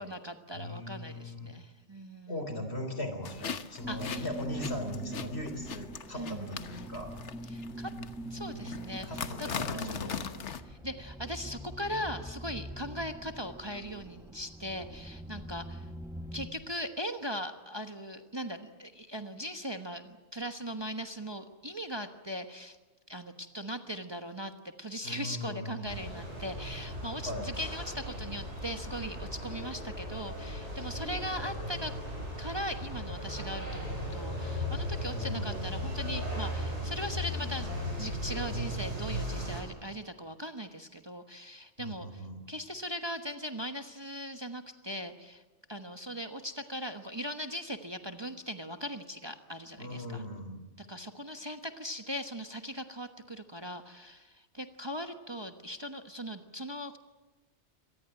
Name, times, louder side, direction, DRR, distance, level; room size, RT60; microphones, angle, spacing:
voice 1, 0.0-2.4 3.9-4.3 6.2-6.6 7.5-7.9 8.3-10.4 10.7-15.9 16.3-22.8 23.1-24.5 24.8-31.9 32.4-42.2 42.5-45.4 45.7-50.2 50.8-57.0, equal, 25° right, 6 dB, 1.2 m, -39 dB
voice 2, 0.5-1.5 2.3-7.1 9.0-10.4 25.0-26.0 27.2-27.5 35.1-35.7 41.8-42.4 49.8-50.6, left 1 dB, 65° left, 8 dB, 3.7 m, -39 dB
sound 1, 3.2-10.6, left 6 dB, 80° left, 1.4 m, -40 dB
sound 2, 3.8-16.5, right 1 dB, ahead, 1.7 m, -44 dB
sound 3, 25.9-39.6, equal, 80° right, 7.3 m, -37 dB
25.5 x 19.0 x 9.0 m, 1.2 s
omnidirectional pair, 1.2 m